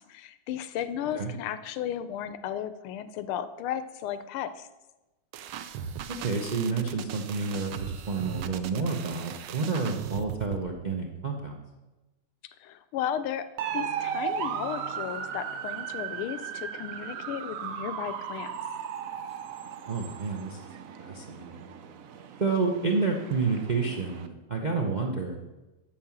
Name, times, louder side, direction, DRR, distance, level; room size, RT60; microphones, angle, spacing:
voice 1, 0.0-4.7 12.4-13.5 13.7-18.5, left 10 dB, 85° left, 13 dB, 1.6 m, -34 dB
sound 1, 5.3-10.6, right 9 dB, 70° right, 1.2 m, -38 dB
voice 2, 6.1-11.6 19.9-20.6 21.0-21.7 22.4-25.4, right 4 dB, 50° right, 1 dB, 0.5 m, -29 dB
sound 2, 13.6-24.3, right 8 dB, 90° right, 0.7 m, -36 dB
8.7 x 6.7 x 7.3 m, 1.1 s
omnidirectional pair, 2.3 m